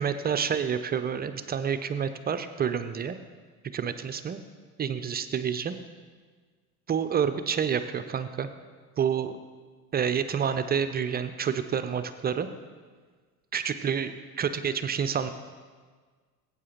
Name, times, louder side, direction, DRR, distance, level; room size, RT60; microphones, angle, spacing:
voice 1, 0.0-3.2 3.7-4.4 4.8-5.8 6.9-8.5 9.0-9.4 9.9-12.5 13.5-15.3, right 7 dB, 25° right, 10 dB, 0.4 m, -28 dB
16.5 x 8.6 x 2.9 m, 1.5 s
hypercardioid pair, 70°, 45 cm